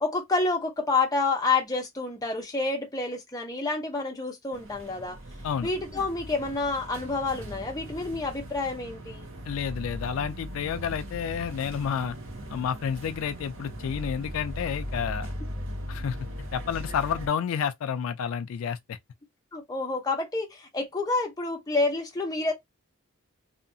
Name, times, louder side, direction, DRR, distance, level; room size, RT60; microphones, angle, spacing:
voice 1, 0.0-5.2 5.6-9.3 19.5-22.5, left 3 dB, 15° left, 0.7 m, -28 dB
sound 1, 4.5-17.3, equal, 65° right, 0.8 m, -39 dB
voice 2, 9.5-12.2 12.5-15.3 15.9-16.2 16.5-19.0, left 7 dB, 75° left, 0.3 m, -30 dB
2.8 x 2.3 x 2.6 m
head